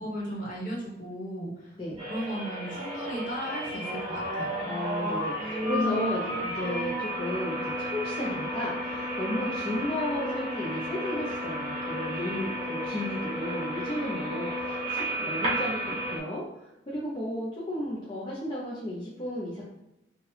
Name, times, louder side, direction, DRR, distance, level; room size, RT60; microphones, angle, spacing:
voice 1, 0.0-1.8 2.0-4.5, equal, 50° left, -4 dB, 1.3 m, -36 dB
sound 1, 2.0-16.2, equal, 35° right, 1.0 m, -32 dB
voice 2, 4.6-19.6, left 1 dB, 25° left, -7 dB, 0.7 m, -34 dB
4.7 x 2.5 x 3.2 m, 0.89 s
head